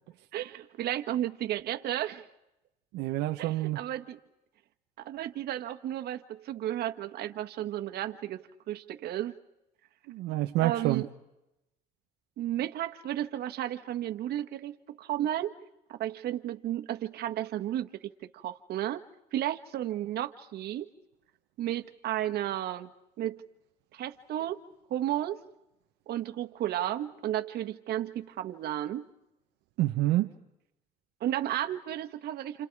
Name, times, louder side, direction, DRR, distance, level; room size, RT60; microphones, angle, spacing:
voice 1, 0.3-2.3 3.4-4.2 5.0-9.3 10.6-11.1 12.4-15.5 15.9-19.0 19.3-20.9 21.6-22.9 23.2-23.4 23.9-24.6 24.9-25.4 26.1-29.1 31.2-32.7, right 12 dB, 70° right, 6 dB, 1.6 m, -33 dB
voice 2, 2.9-3.8 10.1-11.0 29.8-30.3, right 16 dB, 90° right, 4 dB, 1.0 m, -28 dB
29.5 x 28.5 x 4.8 m, 0.89 s
cardioid pair, 110°, 17 cm